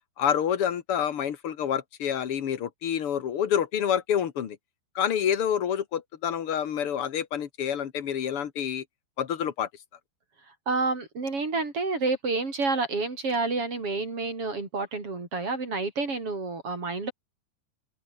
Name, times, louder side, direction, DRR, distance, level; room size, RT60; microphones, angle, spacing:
voice 1, 0.2-4.6 4.9-8.8 9.2-9.7, left 9 dB, 65° left, 1.4 m, -28 dB
voice 2, 10.7-17.1, right 3 dB, 35° right, 4.8 m, -29 dB
open air
omnidirectional pair, 4.9 m